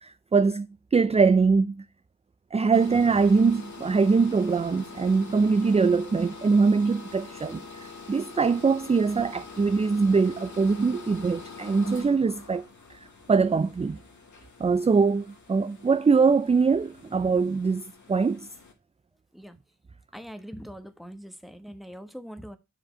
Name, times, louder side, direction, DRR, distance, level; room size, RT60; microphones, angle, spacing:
voice 1, 0.0-1.8 2.5-7.6 8.1-12.7 13.3-14.0 14.6-17.8 18.1-18.5, right 4 dB, 20° right, 0.3 m, -22 dB
sound 1, 2.7-18.7, left 4 dB, 80° left, 1.9 m, -45 dB
voice 2, 20.1-22.6, equal, ahead, 1.1 m, -42 dB
7.3 x 5.0 x 4.4 m
wide cardioid pair, 60°, 29 cm